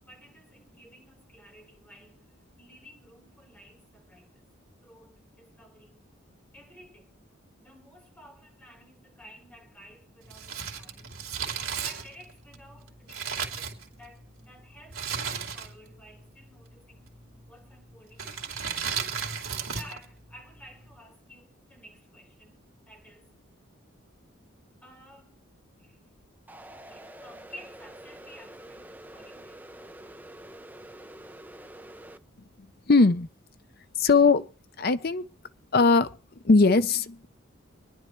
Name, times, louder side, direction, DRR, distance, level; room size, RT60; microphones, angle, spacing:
voice 1, 0.0-4.5 4.8-6.0 6.5-7.2 7.6-11.2 11.8-17.1 17.5-18.7 19.6-23.3 24.8-25.4 25.8-26.0 26.7-29.7, equal, 5° left, 3.8 m, -53 dB
Crumpling crinkling, 10.3-14.3 14.9-16.2 17.1-17.5 18.1-20.0 20.3-20.4, right 6 dB, 85° right, 2.6 m, -34 dB
sound 1, 26.5-32.2, right 1 dB, 10° right, 0.6 m, -47 dB
voice 2, 32.9-33.3 34.0-34.4 34.8-35.2 35.7-36.1 36.4-37.3, left 3 dB, 45° left, 0.6 m, -20 dB
25.0 x 10.5 x 3.1 m
head